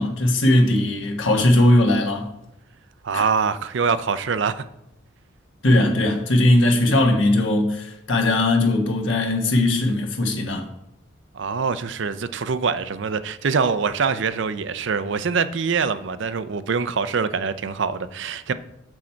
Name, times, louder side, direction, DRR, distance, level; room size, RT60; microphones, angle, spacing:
voice 1, 0.0-2.3 3.1-3.2 5.6-10.7, left 1 dB, 70° left, 1.3 m, -19 dB
voice 2, 3.0-4.6 11.3-18.5, right 5 dB, 65° right, 0.5 m, -24 dB
7.1 x 6.2 x 4.4 m
head